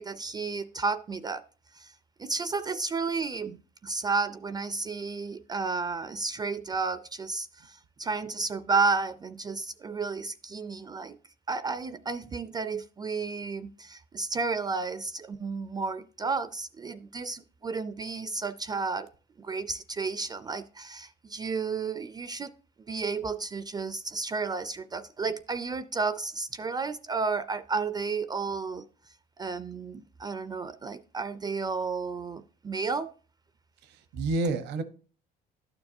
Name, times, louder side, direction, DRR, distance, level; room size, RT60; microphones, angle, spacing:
voice 1, 0.0-1.4 1.7-1.9 2.2-11.2 11.5-19.1 19.4-22.5 22.9-28.9 29.4-33.1, right 4 dB, 25° right, 13 dB, 0.4 m, -32 dB
voice 2, 33.8-34.8, right 2 dB, 85° right, 12 dB, 0.9 m, -29 dB
11.5 x 7.0 x 2.6 m, 0.39 s
cardioid pair, 110°, 17 cm